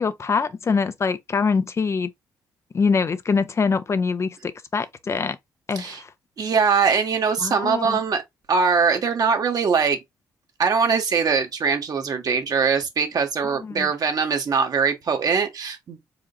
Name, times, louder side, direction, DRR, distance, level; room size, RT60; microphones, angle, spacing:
voice 1, 0.0-2.1 2.7-5.4 5.7-6.1 7.4-8.0 13.5-13.9, left 5 dB, 40° left, 0.5 m, -24 dB
voice 2, 6.4-8.2 8.5-10.0 10.6-16.0, right 5 dB, 55° right, 1.3 m, -22 dB
4.9 x 3.7 x 2.4 m
cardioid pair, 75°, 8 cm